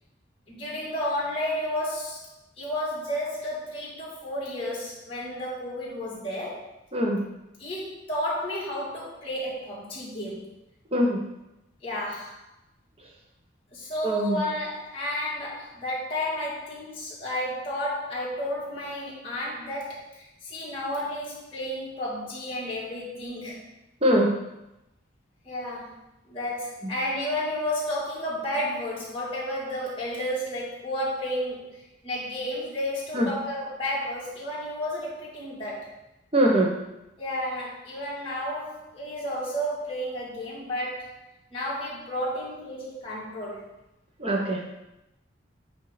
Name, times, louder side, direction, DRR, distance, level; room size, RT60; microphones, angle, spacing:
voice 1, 0.5-2.3 2.6-6.7 7.6-10.4 11.8-12.4 13.7-23.6 25.4-26.0 26.3-31.7 32.0-35.9 37.2-41.2 41.5-43.6, left 1 dB, 30° left, -7 dB, 2.2 m, -32 dB
voice 2, 10.9-11.2 14.0-14.4 24.0-24.3 26.8-26.9 33.1-33.3 36.3-36.7 44.2-44.6, right 1 dB, 30° right, -1 dB, 1.1 m, -22 dB
8.5 x 2.9 x 5.0 m, 0.90 s
head